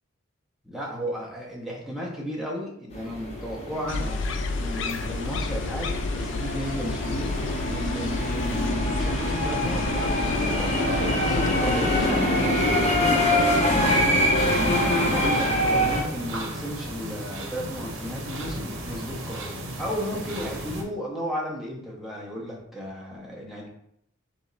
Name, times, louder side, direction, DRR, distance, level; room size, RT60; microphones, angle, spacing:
voice 1, 0.6-14.1 15.0-23.7, equal, ahead, -4 dB, 0.7 m, -34 dB
sound 1, 2.9-16.0, left 1 dB, 30° left, 0.8 m, -25 dB
sound 2, 3.9-12.1, left 3 dB, 60° left, 0.3 m, -31 dB
sound 3, 14.4-20.8, right 1 dB, 75° right, 0.7 m, -35 dB
3.4 x 3.0 x 3.9 m, 0.74 s
head